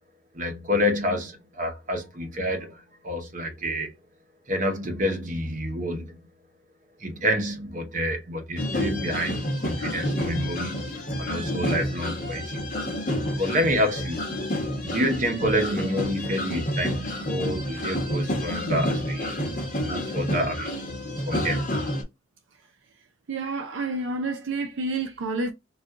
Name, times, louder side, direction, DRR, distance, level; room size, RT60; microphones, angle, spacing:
voice 1, 0.3-4.0 4.5-6.2 7.0-12.6 13.3-14.2 14.8-19.4 19.8-20.8 21.3-21.7, equal, 40° right, 0.8 m, -28 dB
sound 1, 8.6-22.0, equal, 45° left, 0.9 m, -29 dB
voice 2, 23.3-25.5, right 3 dB, 80° right, 0.5 m, -29 dB
2.5 x 2.2 x 3.6 m
head